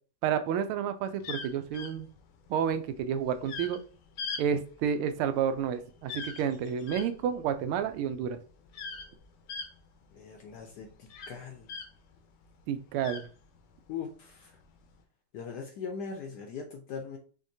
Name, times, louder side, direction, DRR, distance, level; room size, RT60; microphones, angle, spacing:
voice 1, 0.2-2.1 2.5-3.8 4.4-8.4 12.7-13.3, right 8 dB, 85° right, 10 dB, 1.5 m, -30 dB
sound 1, 1.2-12.2 12.5-13.9 14.6-14.9, left 5 dB, 90° left, 1.7 m, -41 dB
voice 2, 10.2-10.9 11.3-11.7 13.9-14.1 15.3-17.2, left 6 dB, 70° left, 4 dB, 1.0 m, -39 dB
5.4 x 3.6 x 2.7 m, 0.39 s
omnidirectional pair, 2.3 m